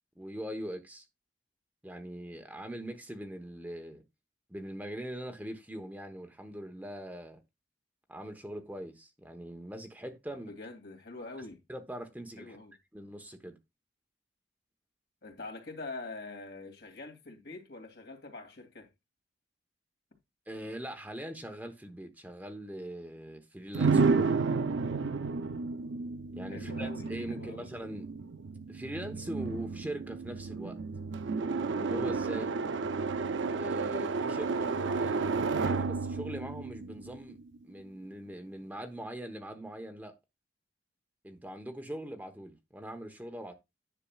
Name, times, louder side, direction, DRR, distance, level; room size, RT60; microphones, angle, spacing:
voice 1, 0.2-1.1 1.8-4.0 4.5-7.4 8.1-10.5 11.7-12.6 12.9-13.6 20.5-24.3 26.3-28.1 28.7-30.8 31.7-32.5 33.5-37.4 37.6-40.1 41.2-43.5, right 1 dB, 10° right, 1.0 m, -42 dB
voice 2, 10.5-11.6 12.4-12.7 15.2-18.9 26.5-27.7, left 3 dB, 60° left, 2.7 m, -44 dB
sound 1, 23.7-37.6, right 4 dB, 85° right, 0.6 m, -31 dB
10.0 x 6.7 x 2.4 m
head